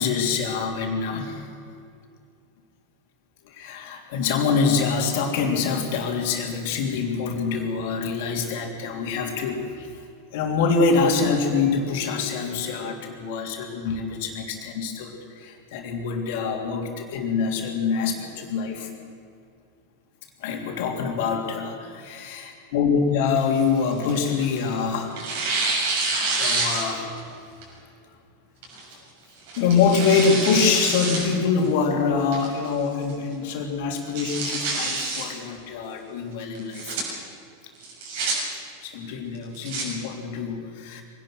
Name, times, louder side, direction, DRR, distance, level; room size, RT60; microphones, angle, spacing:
voice 1, 0.0-1.4 3.5-9.9 10.3-18.9 20.4-25.2 26.4-27.1 29.5-37.0 38.8-41.0, left 5 dB, 55° left, 2 dB, 3.4 m, -25 dB
Tearing, 23.3-24.7 25.2-27.2 27.6-27.7 28.6-28.9 29.5-31.3 31.6-31.7 32.3-32.7 33.1-33.2 33.5-33.6 34.0-35.2 36.5-37.0 37.8-38.3 39.3-39.8, right 3 dB, 60° right, 6.7 m, -27 dB
24.0 x 18.0 x 6.3 m, 2.4 s
figure-of-eight pair, 85°, 0 cm